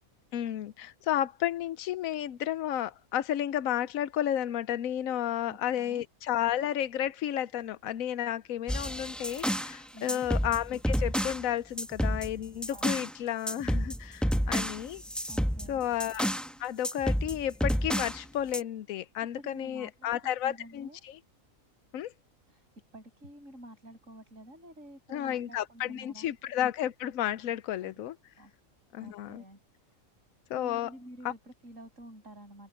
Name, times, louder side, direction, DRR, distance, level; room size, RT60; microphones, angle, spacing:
voice 1, 0.3-15.0 15.7-16.3 16.6-21.2 21.9-22.1 25.1-28.1 28.9-29.4 30.5-30.9 31.2-31.3, left 11 dB, 90° left, 1.1 m, -32 dB
voice 2, 5.5-6.0 9.9-10.3 12.7-13.1 15.3-15.9 19.0-19.1 19.4-21.0 22.5-22.7 22.9-26.3 27.8-28.0 28.4-28.5 29.0-29.6 29.9-30.0 30.6-32.7, right 1 dB, 70° right, 7.4 m, -49 dB
sound 1, 8.7-9.8 10.1-11.4 11.8-13.1 13.5-16.5 16.8-18.2 18.5-18.6, equal, ahead, 0.9 m, -30 dB
open air
omnidirectional pair, 1.4 m